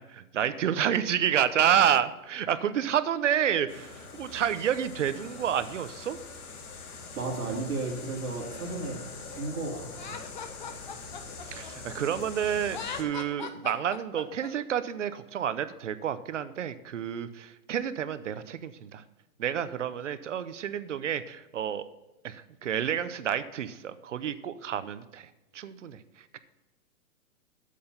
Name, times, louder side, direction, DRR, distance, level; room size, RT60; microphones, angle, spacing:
voice 1, 0.0-6.2 11.5-19.0 19.4-21.9 22.2-26.4, right 9 dB, 55° right, 14 dB, 0.7 m, -29 dB
sound 1, 3.7-13.0, left 4 dB, 80° left, 2.2 m, -43 dB
voice 2, 7.1-9.0 9.3-10.2, right 3 dB, 70° right, -3 dB, 3.0 m, -34 dB
Laughter, 9.9-12.2 12.6-14.5, left 6 dB, 30° left, 0.7 m, -40 dB
8.4 x 7.8 x 5.6 m, 1.1 s
hypercardioid pair, 175°, 44 cm